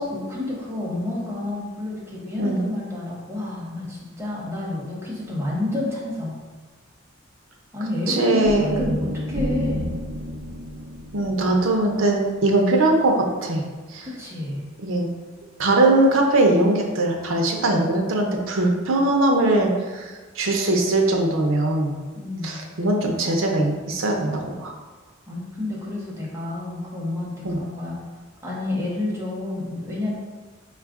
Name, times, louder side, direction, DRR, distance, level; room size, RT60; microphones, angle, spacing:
voice 1, 0.1-6.4 7.7-10.0 14.0-14.6 22.1-22.7 25.3-28.0 28.4-30.1, left 1 dB, 15° right, -6 dB, 1.0 m, -29 dB
voice 2, 8.1-8.8 11.1-13.6 13.9-14.1 14.8-15.1 15.6-20.1 20.4-22.0 22.4-24.7 27.4-27.6, right 2 dB, 85° right, 2 dB, 0.6 m, -21 dB
sound 1, 8.4-12.7, equal, 50° right, 0.4 m, -30 dB
4.7 x 2.4 x 3.5 m, 1.4 s
head